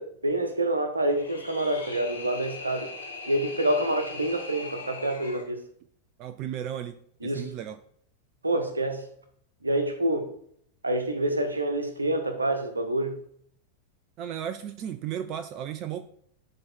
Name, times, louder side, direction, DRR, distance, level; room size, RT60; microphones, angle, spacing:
voice 1, 0.0-2.9 3.3-5.6 7.2-7.5 8.4-9.0 9.6-10.3 10.8-13.2, right 1 dB, 80° right, 6 dB, 1.3 m, -27 dB
sound 1, 1.0-5.5, left 3 dB, 75° left, 2.2 m, -40 dB
voice 2, 6.2-7.8 14.2-16.0, right 10 dB, 40° right, 11 dB, 0.5 m, -35 dB
11.0 x 3.9 x 4.4 m, 0.66 s
figure-of-eight pair, 90°, 0 cm